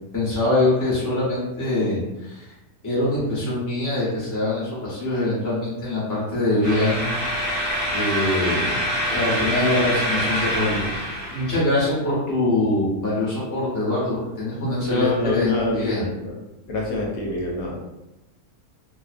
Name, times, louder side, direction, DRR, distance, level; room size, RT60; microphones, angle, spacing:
voice 1, 0.1-2.5 2.8-7.0 7.9-8.8 9.1-16.0, left 2 dB, 20° left, -7 dB, 0.6 m, -24 dB
sound 1, 6.6-11.6, equal, 75° right, 1.2 m, -25 dB
voice 2, 14.8-16.4 16.7-17.8, left 2 dB, 75° left, -1 dB, 1.0 m, -26 dB
2.4 x 2.1 x 2.4 m, 0.96 s
omnidirectional pair, 1.6 m